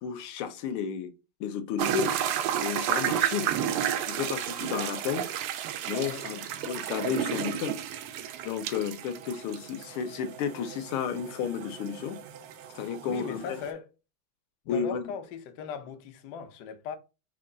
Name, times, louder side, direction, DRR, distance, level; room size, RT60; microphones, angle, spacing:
voice 1, 0.0-1.1 1.4-2.1 2.6-3.5 4.0-5.3 5.9-7.8 8.4-12.2 12.8-13.6 14.7-15.0, left 7 dB, 85° left, 1.5 m, -32 dB
sound 1, 1.8-13.7, right 10 dB, 90° right, 1.5 m, -32 dB
voice 2, 6.0-6.4 13.0-13.9 14.6-17.0, left 7 dB, 70° left, 1.0 m, -39 dB
4.5 x 2.3 x 3.7 m
omnidirectional pair, 2.4 m